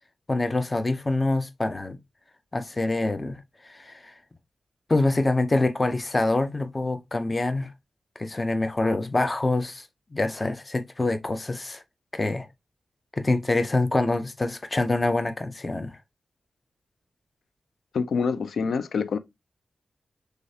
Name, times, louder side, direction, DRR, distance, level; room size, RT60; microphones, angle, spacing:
voice 1, 0.3-2.0 2.5-4.2 4.9-7.7 8.2-9.8 10.1-11.8 12.1-12.5 13.2-16.0, left 2 dB, 20° left, 0.4 m, -25 dB
voice 2, 17.9-19.2, left 5 dB, 80° left, 0.4 m, -26 dB
6.3 x 2.4 x 2.7 m
wide cardioid pair, 170°, 0 cm